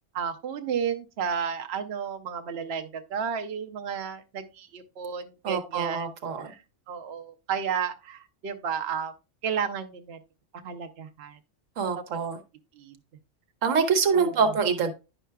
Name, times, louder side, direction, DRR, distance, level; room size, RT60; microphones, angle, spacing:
voice 1, 0.1-6.1 6.4-6.6 6.9-9.1 9.4-10.2 10.6-11.4 12.7-13.0 14.1-14.5, right 7 dB, 60° right, 0.8 m, -32 dB
voice 2, 5.4-6.5 11.8-12.4 13.6-14.9, right 5 dB, 80° right, 1.2 m, -25 dB
9.9 x 5.5 x 2.3 m
omnidirectional pair, 1.3 m